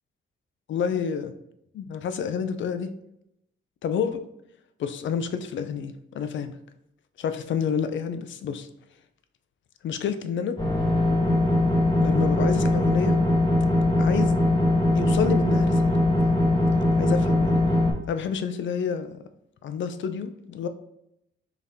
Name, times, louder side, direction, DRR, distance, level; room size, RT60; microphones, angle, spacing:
voice 1, 0.7-1.3 1.7-2.9 3.8-4.2 4.8-6.6 7.2-8.7 9.8-10.6 12.0-13.2 14.0-14.4 14.9-15.9 16.2-16.4 17.0-17.6 18.1-19.1 19.6-20.7, left 7 dB, 65° left, 10 dB, 0.4 m, -29 dB
sound 1, 10.6-17.9, left 1 dB, 20° left, 1.4 m, -21 dB
3.9 x 3.5 x 2.7 m, 0.80 s
wide cardioid pair, 135°, 21 cm